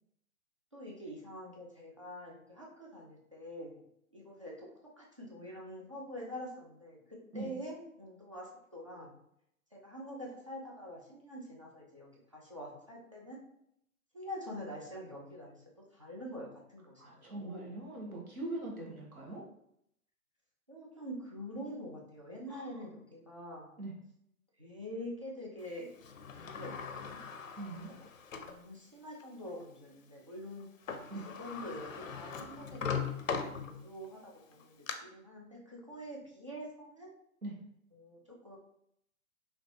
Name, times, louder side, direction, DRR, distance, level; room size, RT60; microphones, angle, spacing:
voice 1, 0.7-3.8 4.1-4.7 5.0-9.2 9.7-13.4 14.1-15.6 15.9-17.7 20.7-23.8 24.6-25.9 26.4-27.2 28.0-28.1 28.4-30.7 31.4-37.2 37.9-38.6, equal, 25° right, -4 dB, 0.3 m, -46 dB
voice 2, 17.0-19.4 22.5-22.8 23.8-23.9 27.6-27.9 31.1-31.3 37.4-37.6, right 2 dB, 75° right, -1 dB, 1.2 m, -42 dB
Sliding door, 26.0-28.6 29.2-29.3 30.6-30.7 30.9-34.1 34.5-34.9, left 6 dB, 65° left, 0.5 m, -40 dB
3.2 x 2.9 x 2.7 m, 0.74 s
figure-of-eight pair, 125°, 43 cm